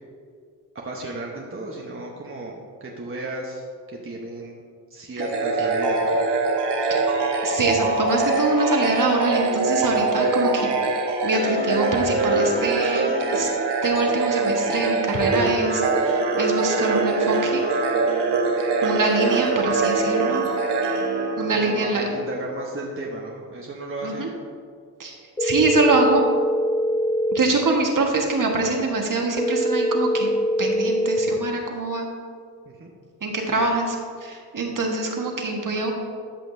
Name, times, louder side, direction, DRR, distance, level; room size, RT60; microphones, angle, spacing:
voice 1, 0.8-4.6 4.9-6.2 21.5-24.3 32.7-32.9, right 1 dB, 30° right, -2 dB, 1.1 m, -34 dB
sound 1, 5.2-22.0, right 3 dB, 70° right, 1.3 m, -23 dB
voice 2, 7.4-10.7 11.2-13.5 13.8-17.6 18.8-20.4 20.8-20.9 21.4-22.0 24.0-24.3 25.0-26.2 27.3-30.3 30.6-32.1 33.2-35.9, right 3 dB, 45° right, 1 dB, 1.6 m, -24 dB
sound 2, 25.4-27.4 29.4-31.4, equal, 10° left, 0.6 m, -23 dB
13.5 x 5.8 x 2.7 m, 2.1 s
supercardioid pair, 45°, 43 cm